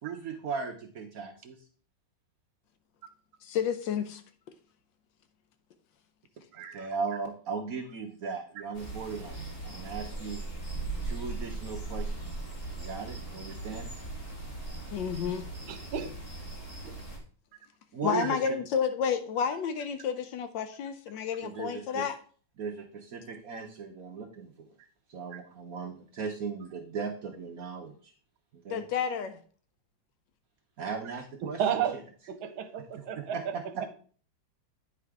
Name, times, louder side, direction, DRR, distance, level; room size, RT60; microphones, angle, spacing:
voice 1, 0.0-1.6 6.5-10.4 11.0-12.3 12.7-13.9 16.0-16.1 17.9-18.6 21.4-22.1 22.6-24.7 25.1-28.1 28.5-28.8 30.8-32.0 33.0-33.9, right 5 dB, 60° right, 3 dB, 0.9 m, -37 dB
voice 2, 3.4-4.2 14.9-15.5 18.0-22.1 28.7-29.4, left 7 dB, 75° left, 9 dB, 1.2 m, -30 dB
voice 3, 6.5-6.9 9.7-9.8 15.7-16.1 31.4-32.0 32.3-33.4, right 8 dB, 80° right, 8 dB, 1.6 m, -32 dB
sound 1, 8.7-17.2, right 2 dB, 30° left, 2.0 m, -38 dB
9.3 x 4.8 x 3.5 m, 0.43 s
omnidirectional pair, 2.2 m